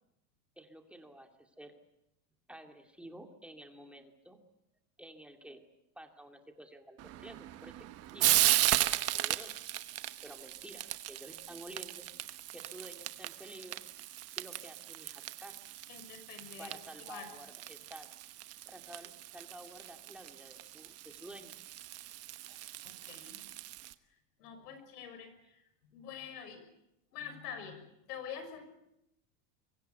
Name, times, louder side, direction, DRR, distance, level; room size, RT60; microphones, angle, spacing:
voice 1, 0.6-1.7 2.5-4.4 5.0-5.6 5.9-9.5 10.2-12.1 12.5-13.8 14.4-15.6 16.6-18.1 18.7-21.6, right 1 dB, ahead, 4 dB, 2.5 m, -51 dB
Frying (food), 7.0-23.9, right 14 dB, 35° right, 1.1 m, -36 dB
voice 2, 15.9-17.3 22.8-23.4 24.4-25.6 25.9-26.7 27.1-28.7, left 7 dB, 90° left, 9 dB, 6.4 m, -46 dB
25.5 x 23.5 x 8.2 m, 0.84 s
supercardioid pair, 155°, 45 cm